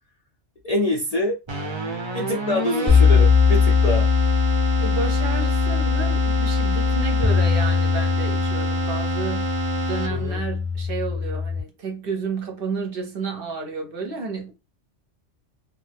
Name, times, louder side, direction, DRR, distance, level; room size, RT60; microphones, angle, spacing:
voice 1, 0.6-1.4 2.1-4.1 10.1-10.4, left 1 dB, 50° left, 0.4 m, -25 dB
Keyboard (musical), 1.5-10.5, right 2 dB, 35° right, 0.5 m, -28 dB
sound 1, 2.9-11.6, left 6 dB, 15° left, 0.8 m, -21 dB
voice 2, 4.8-9.5 9.9-14.5, right 4 dB, 55° right, 0.8 m, -31 dB
2.7 x 2.2 x 3.3 m
omnidirectional pair, 1.2 m